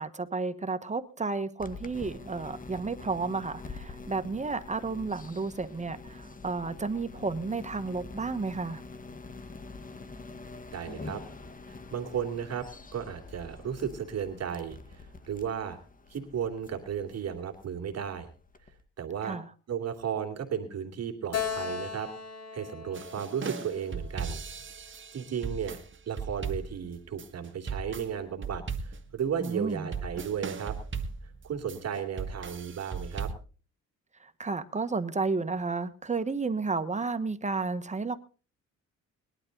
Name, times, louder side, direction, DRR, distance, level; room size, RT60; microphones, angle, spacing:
voice 1, 0.0-8.8 19.2-19.4 29.4-29.9 34.2-38.2, right 4 dB, 25° right, 1.4 m, -32 dB
sound 1, 1.6-18.8, left 3 dB, 25° left, 1.7 m, -46 dB
voice 2, 10.7-11.2 11.7-15.8 16.1-18.3 19.0-19.4 19.7-22.1 22.5-24.4 25.1-25.8 26.1-30.8 31.2-33.3, right 8 dB, 55° right, 2.7 m, -34 dB
Keyboard (musical), 21.3-24.8, left 7 dB, 55° left, 4.1 m, -37 dB
sound 2, 22.9-33.3, right 5 dB, 40° right, 2.1 m, -37 dB
20.5 x 12.0 x 4.0 m
cardioid pair, 90°, 30 cm